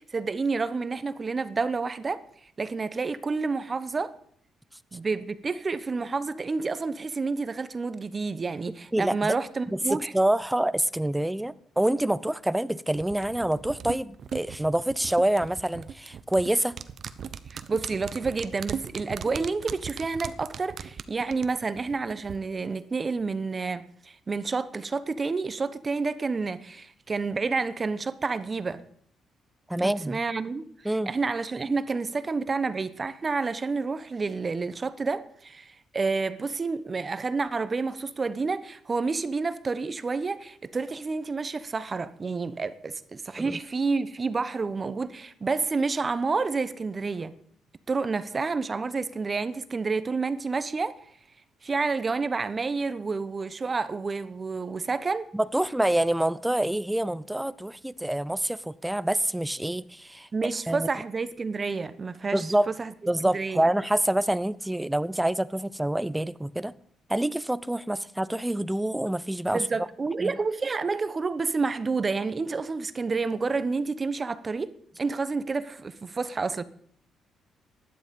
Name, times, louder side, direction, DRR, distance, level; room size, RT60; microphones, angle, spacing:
voice 1, 0.0-2.2 2.6-4.1 4.9-10.1 17.5-28.8 29.8-47.3 47.9-50.9 51.6-55.3 60.3-62.5 62.8-62.9 63.3-63.7 69.5-76.6, right 4 dB, 30° right, 1.0 m, -29 dB
voice 2, 8.9-9.4 9.7-16.8 29.7-30.2 30.8-31.1 43.4-43.6 55.3-60.9 62.3-62.7 63.1-66.7 67.1-69.6 70.2-70.4, right 1 dB, 5° right, 0.6 m, -26 dB
sound 1, 12.9-22.4 22.7-22.8, right 7 dB, 55° right, 0.9 m, -39 dB
16.0 x 11.0 x 5.3 m
cardioid pair, 90°, 0 cm